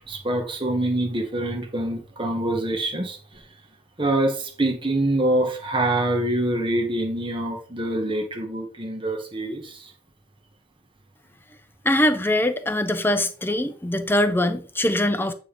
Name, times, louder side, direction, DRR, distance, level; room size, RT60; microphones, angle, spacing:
voice 1, 0.1-3.4 4.0-9.9, right 1 dB, 25° right, 1.3 m, -25 dB
voice 2, 11.8-15.3, left 1 dB, 10° left, 0.6 m, -22 dB
9.3 x 3.5 x 5.2 m
head